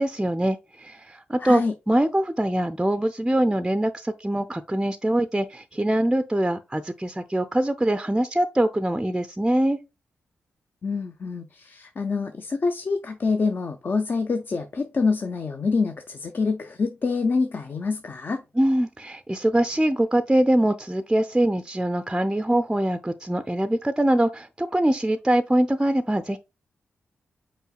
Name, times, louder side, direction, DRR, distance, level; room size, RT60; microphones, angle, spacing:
voice 1, 0.0-9.8 18.6-26.4, right 1 dB, 10° right, 0.4 m, -23 dB
voice 2, 1.4-1.7 10.8-18.4, left 4 dB, 45° left, 0.6 m, -26 dB
5.4 x 4.1 x 2.3 m
supercardioid pair, 40°, 5 cm